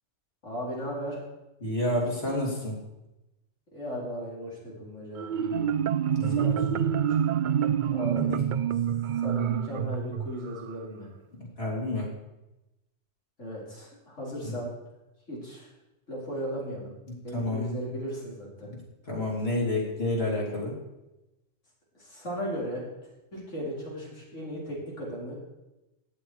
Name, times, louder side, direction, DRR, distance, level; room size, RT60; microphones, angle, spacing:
voice 1, 0.4-1.2 3.7-5.7 6.2-7.1 7.9-8.3 9.2-11.1 13.4-14.7 15.3-15.7 16.1-17.0 17.2-18.7 22.0-22.8 23.3-25.4, equal, 80° left, -5 dB, 5.0 m, -36 dB
voice 2, 1.6-2.8 6.1-6.8 8.3-8.4 11.6-12.1 14.4-14.5 17.1-17.8 18.7-18.8 19.1-20.8, left 1 dB, 55° left, -3 dB, 3.7 m, -30 dB
Marimba xylophone, 5.2-10.7, right 9 dB, 60° right, 0.5 m, -27 dB
14.5 x 10.0 x 4.8 m, 0.97 s
omnidirectional pair, 1.2 m